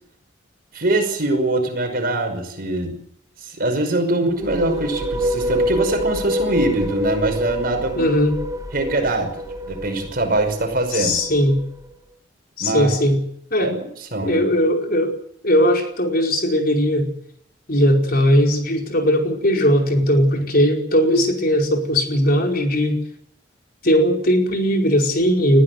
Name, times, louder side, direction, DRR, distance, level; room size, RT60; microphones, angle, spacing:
voice 1, 0.7-3.0 3.4-8.1 8.7-9.3 9.6-11.2 12.6-12.9 13.6-14.4, right 2 dB, 55° right, 6 dB, 5.6 m, -22 dB
sound 1, 4.3-11.9, equal, 20° right, 1.8 m, -27 dB
voice 2, 8.0-8.4 10.9-11.6 12.6-13.2 13.5-13.7 14.2-15.1 15.4-17.1 17.7-23.0 23.8-25.6, equal, 55° left, 2 dB, 4.9 m, -18 dB
21.0 x 15.0 x 9.5 m, 0.70 s
head